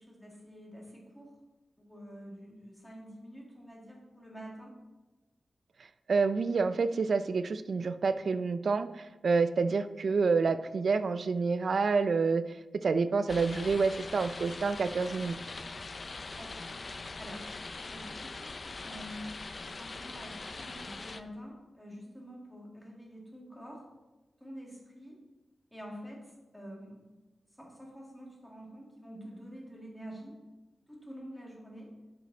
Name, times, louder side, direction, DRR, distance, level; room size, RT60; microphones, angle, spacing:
voice 1, 0.0-1.4 1.8-4.7 16.3-16.7 17.2-17.5 17.8-19.3 19.6-23.8 24.4-25.2 25.7-27.0 27.5-30.4 30.9-31.9, equal, ahead, -2 dB, 1.8 m, -47 dB
voice 2, 6.1-15.4, right 4 dB, 55° right, 12 dB, 0.4 m, -28 dB
sound 1, 13.3-21.2, left 3 dB, 35° left, 0.4 m, -42 dB
11.0 x 5.1 x 3.9 m, 1.1 s
wide cardioid pair, 155°, 0 cm